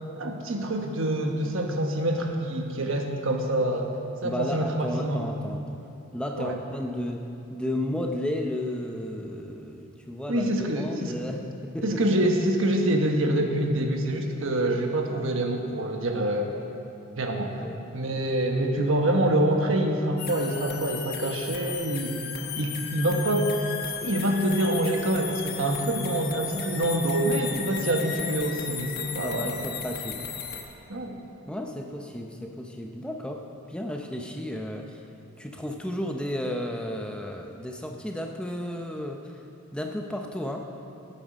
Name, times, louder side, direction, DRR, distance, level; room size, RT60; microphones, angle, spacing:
voice 1, 0.2-3.9 4.2-5.2 6.4-6.6 10.3-11.1 11.8-16.6 17.2-17.6 17.9-22.2 22.6-23.6 24.0-29.6 30.9-31.2, right 1 dB, 60° right, 3 dB, 1.3 m, -26 dB
voice 2, 4.2-5.8 6.1-12.0 17.6-17.8 29.2-30.3 31.4-35.0 35.4-39.3 39.7-40.7, left 1 dB, 5° left, 2 dB, 0.6 m, -33 dB
sound 1, 20.2-30.6, left 7 dB, 45° left, 1.1 m, -35 dB
18.0 x 8.9 x 5.2 m, 2.8 s
head